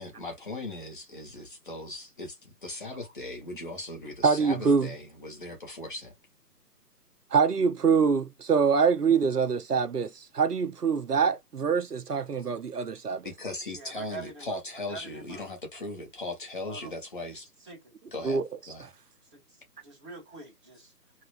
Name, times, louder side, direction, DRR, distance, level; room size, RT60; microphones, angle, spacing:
voice 1, 0.0-6.1 13.2-17.5 18.1-18.4 18.7-18.9, left 2 dB, 30° left, 1.1 m, -38 dB
voice 2, 4.2-4.9 7.3-13.3 18.2-18.4 18.8-18.9, right 5 dB, 70° right, 0.8 m, -25 dB
voice 3, 13.7-14.6 14.9-15.5 16.7-16.9 17.6-17.8 19.3-20.9, right 3 dB, 15° right, 1.9 m, -45 dB
3.2 x 2.9 x 2.5 m
figure-of-eight pair, 155°, 48 cm